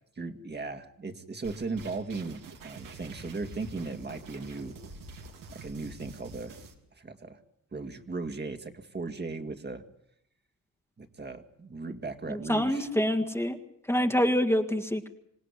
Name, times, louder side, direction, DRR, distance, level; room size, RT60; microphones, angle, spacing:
voice 1, 0.2-4.8 5.5-6.6 7.0-7.4 7.7-9.8 11.0-12.9, right 3 dB, 30° right, 6 dB, 2.2 m, -37 dB
sound 1, 1.4-6.7, right 2 dB, 85° right, 3.5 m, -46 dB
voice 2, 12.3-13.6 13.9-15.1, equal, 10° left, 5 dB, 1.8 m, -26 dB
26.5 x 17.5 x 9.8 m, 0.75 s
cardioid pair, 95°, 32 cm